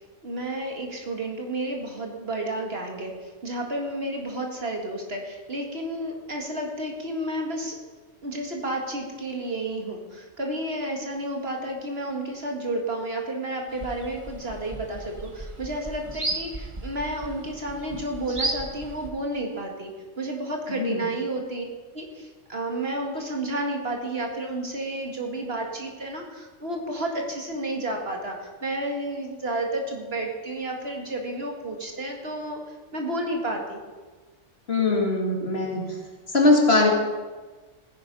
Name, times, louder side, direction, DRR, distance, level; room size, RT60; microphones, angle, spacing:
voice 1, 0.2-7.8 8.2-21.6 21.9-32.6 32.9-33.8, right 1 dB, 55° right, 2 dB, 2.2 m, -31 dB
sound 1, 13.7-19.1, right 2 dB, 25° right, 1.3 m, -35 dB
voice 2, 20.7-21.0 34.7-35.8 36.3-36.9, left 2 dB, 55° left, 1 dB, 2.5 m, -21 dB
15.5 x 10.0 x 5.4 m, 1.3 s
omnidirectional pair, 1.2 m